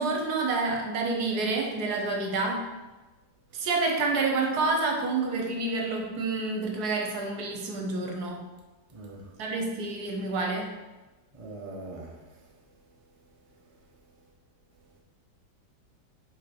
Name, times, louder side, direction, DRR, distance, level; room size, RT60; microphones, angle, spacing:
voice 1, 0.0-2.7 3.5-8.4 9.4-10.7, right 3 dB, 65° right, 2 dB, 1.3 m, -28 dB
voice 2, 8.9-9.3 11.3-12.2, right 2 dB, 30° right, -1 dB, 0.6 m, -41 dB
5.3 x 4.2 x 4.4 m, 1.1 s
omnidirectional pair, 1.9 m